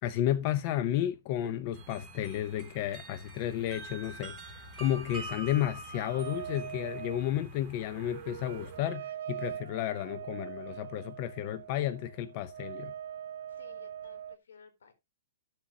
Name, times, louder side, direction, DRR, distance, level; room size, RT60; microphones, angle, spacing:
voice 1, 0.0-12.9, left 12 dB, 40° left, 0.7 m, -32 dB
sound 1, 1.7-8.8, right 2 dB, 10° right, 2.7 m, -46 dB
sound 2, 5.9-14.4, right 9 dB, 65° right, 0.5 m, -42 dB
voice 2, 13.5-14.9, left 6 dB, 85° left, 4.0 m, -56 dB
13.0 x 7.4 x 2.8 m
hypercardioid pair, 145°, 0 cm